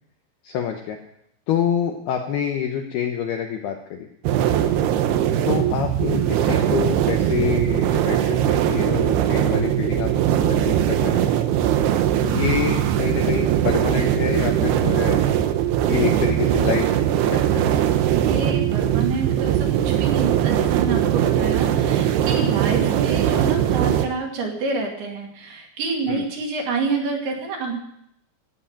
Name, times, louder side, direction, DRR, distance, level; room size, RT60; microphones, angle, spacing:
voice 1, 0.4-1.0 1.5-4.1 5.5-10.1 10.4-11.3 12.2-15.2 15.8-16.9 17.2-17.7 26.1-26.2, left 8 dB, 90° left, 4 dB, 2.3 m, -26 dB
sound 1, 4.2-24.1, right 10 dB, 85° right, 2.4 m, -20 dB
voice 2, 18.1-27.8, right 4 dB, 55° right, 1 dB, 3.8 m, -28 dB
16.0 x 7.9 x 8.8 m, 0.75 s
omnidirectional pair, 6.0 m